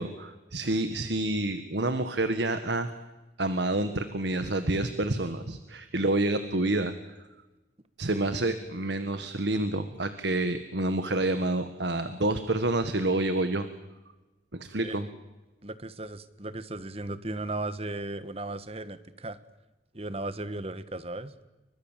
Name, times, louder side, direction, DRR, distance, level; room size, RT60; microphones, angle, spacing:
voice 1, 0.0-2.9 3.4-6.9 8.0-13.7 14.5-15.1, right 2 dB, 70° right, 9 dB, 1.6 m, -28 dB
voice 2, 15.6-19.4 19.9-21.3, right 2 dB, 35° right, 13 dB, 1.3 m, -36 dB
30.0 x 24.5 x 7.5 m, 1.1 s
head